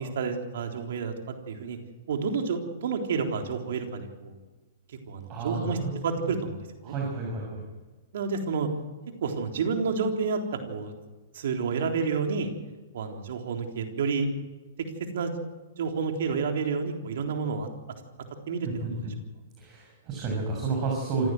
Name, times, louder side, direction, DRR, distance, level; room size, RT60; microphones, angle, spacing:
voice 1, 0.0-1.8 2.1-4.4 5.1-5.8 6.0-7.0 8.1-8.7 9.2-10.9 11.3-12.5 12.9-14.3 15.1-15.3 15.8-17.7 18.5-19.1, right 5 dB, 70° right, 3 dB, 3.7 m, -30 dB
voice 2, 5.3-6.0 6.8-7.6 18.6-19.1 19.6-21.3, right 3 dB, 35° right, 0 dB, 6.8 m, -31 dB
26.5 x 16.0 x 7.9 m, 1.3 s
hypercardioid pair, 120°, 0 cm